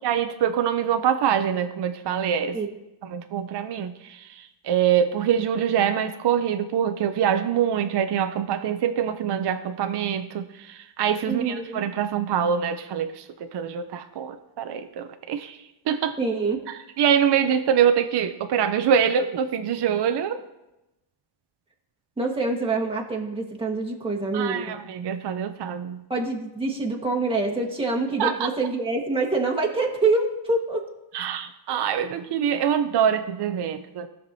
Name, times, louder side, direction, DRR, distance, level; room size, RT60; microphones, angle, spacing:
voice 1, 0.0-2.6 3.0-15.6 15.9-16.2 16.7-20.4 24.3-26.0 28.2-28.5 31.1-34.1, right 8 dB, 55° right, 8 dB, 0.6 m, -24 dB
voice 2, 11.3-11.9 16.2-16.6 22.2-24.8 26.1-30.9, right 3 dB, 10° right, -1 dB, 1.4 m, -26 dB
17.0 x 5.8 x 2.7 m, 0.96 s
cardioid pair, 110°, 50 cm